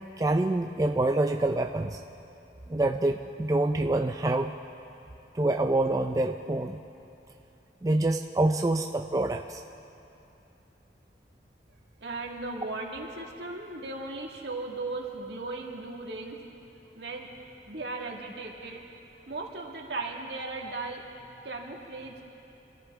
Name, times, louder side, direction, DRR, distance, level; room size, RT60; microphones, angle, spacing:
voice 1, 0.0-2.0 2.7-4.5 5.3-6.8 7.8-9.6, right 2 dB, 20° right, 4 dB, 0.4 m, -26 dB
voice 2, 12.0-16.4 17.0-17.3 17.7-18.8 19.3-21.0 21.4-22.2, right 3 dB, 70° right, 0 dB, 1.9 m, -37 dB
27.0 x 14.0 x 3.6 m, 2.9 s
head